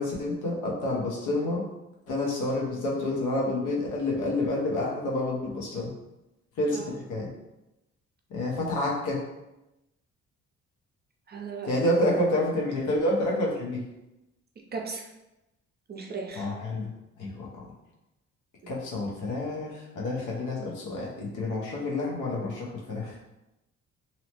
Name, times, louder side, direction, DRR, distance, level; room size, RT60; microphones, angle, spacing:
voice 1, 0.0-1.6 2.1-5.9 6.6-7.3 8.3-9.2 11.6-13.8 16.3-16.9 17.2-17.5 18.7-23.1, left 1 dB, 80° left, -3 dB, 0.8 m, -28 dB
voice 2, 11.3-11.8 14.7-15.1 15.9-16.5 18.6-18.7, right 4 dB, 35° right, 2 dB, 0.4 m, -37 dB
2.8 x 2.0 x 2.9 m, 0.94 s
cardioid pair, 90°, 30 cm